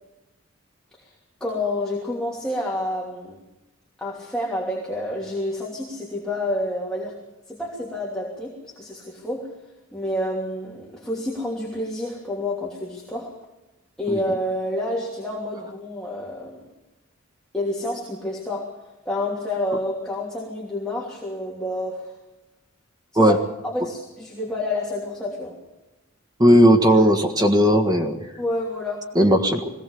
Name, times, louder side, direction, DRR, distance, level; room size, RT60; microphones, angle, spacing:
voice 1, 1.4-3.4 4.0-7.2 7.5-9.5 9.9-13.3 14.0-16.7 17.5-18.7 19.0-22.1 23.1-23.4 23.6-25.5 28.4-29.7, left 1 dB, 5° left, -5 dB, 3.0 m, -29 dB
voice 2, 26.4-28.2 29.2-29.6, equal, 20° right, 4 dB, 1.6 m, -16 dB
22.0 x 17.0 x 7.0 m, 0.99 s
head